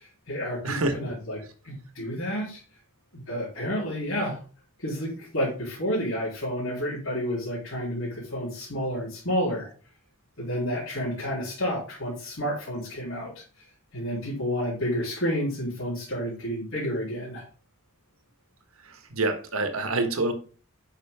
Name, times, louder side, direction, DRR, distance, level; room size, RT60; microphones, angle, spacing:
voice 1, 0.0-1.4 1.6-2.6 3.1-4.4 4.8-9.7 10.4-13.4 13.9-17.4, equal, 65° left, 3.4 m, -30 dB
voice 2, 0.6-1.0 19.1-20.3, right 2 dB, 85° right, 1.5 m, -26 dB
10.5 x 5.7 x 3.6 m
head